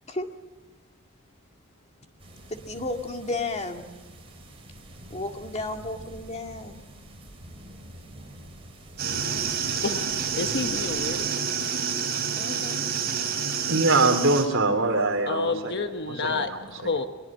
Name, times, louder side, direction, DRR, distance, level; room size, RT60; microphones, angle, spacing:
sound 1, 2.2-11.1, right 1 dB, 25° right, 5.6 m, -46 dB
voice 1, 2.5-3.9 5.1-6.8 12.3-12.8, left 2 dB, 30° left, 2.1 m, -33 dB
sound 2, 9.0-14.5, right 6 dB, 50° right, 4.4 m, -28 dB
voice 2, 10.3-11.3 15.3-17.1, left 3 dB, 55° left, 1.1 m, -29 dB
voice 3, 13.5-16.7, right 3 dB, 65° right, 3.3 m, -24 dB
22.0 x 22.0 x 7.5 m
head